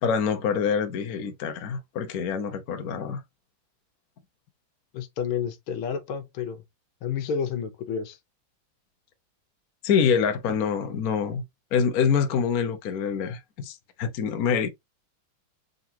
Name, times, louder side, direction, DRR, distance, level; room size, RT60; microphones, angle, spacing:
voice 1, 0.0-3.2 9.8-11.4 11.7-14.7, left 6 dB, 60° left, 1.0 m, -25 dB
voice 2, 4.9-6.6 7.0-8.2, left 7 dB, 80° left, 1.7 m, -30 dB
3.9 x 3.8 x 2.7 m
omnidirectional pair, 2.3 m